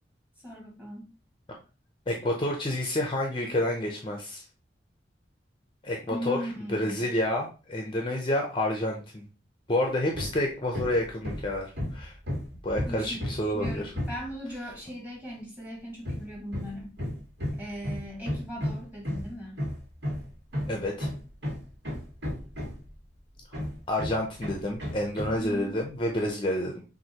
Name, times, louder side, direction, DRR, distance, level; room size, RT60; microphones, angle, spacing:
voice 1, 0.4-1.1 6.1-7.0 12.9-16.9 17.6-19.7 25.4-25.8, equal, 10° right, -4 dB, 1.8 m, -38 dB
voice 2, 2.1-4.4 5.8-6.4 6.7-9.2 9.7-12.1 12.6-13.9 20.7-21.1 23.9-26.8, left 1 dB, 25° left, 1 dB, 0.6 m, -29 dB
Hammer, 10.1-10.4 10.7-14.3 16.0-23.0 23.5-25.4, left 1 dB, 70° right, 1.7 m, -33 dB
6.0 x 2.6 x 2.9 m, 0.32 s
head